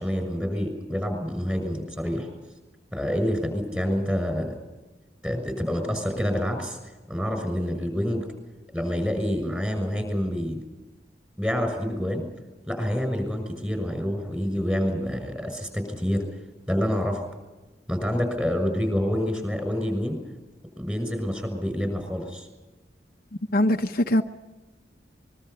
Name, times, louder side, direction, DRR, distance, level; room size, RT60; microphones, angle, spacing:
voice 1, 0.0-2.3 2.9-4.5 5.2-6.8 7.1-8.2 8.7-10.7 11.4-12.2 12.7-16.2 16.7-17.2 17.9-20.2 20.8-22.5, equal, 5° right, 6 dB, 6.5 m, -27 dB
voice 2, 23.5-24.2, left 1 dB, 55° left, 5 dB, 0.8 m, -21 dB
25.5 x 22.5 x 5.6 m, 1.2 s
head